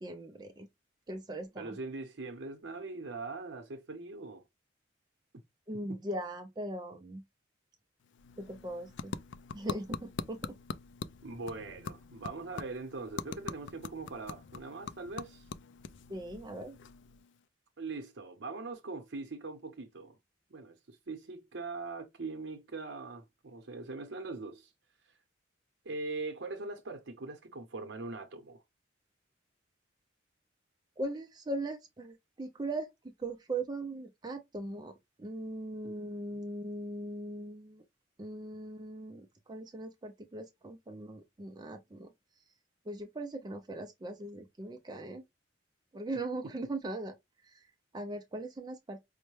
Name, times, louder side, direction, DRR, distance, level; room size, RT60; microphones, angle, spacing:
voice 1, 0.0-0.7 1.1-1.8 5.7-7.2 8.4-9.1 9.5-10.5 16.1-16.8 31.0-32.9 33.2-34.9 35.2-37.8 38.2-42.1 42.9-45.2 45.9-47.1 47.4-47.7 47.9-49.0, right 1 dB, 20° right, 0.4 m, -39 dB
voice 2, 1.6-4.4 5.9-6.0 11.2-15.5 17.8-20.2 20.5-24.7 25.0-25.1 25.8-28.6 35.8-36.0 46.4-46.5, right 3 dB, 65° right, 0.7 m, -41 dB
sound 1, 8.0-17.4, left 5 dB, 65° left, 0.3 m, -44 dB
5.3 x 2.1 x 3.1 m
head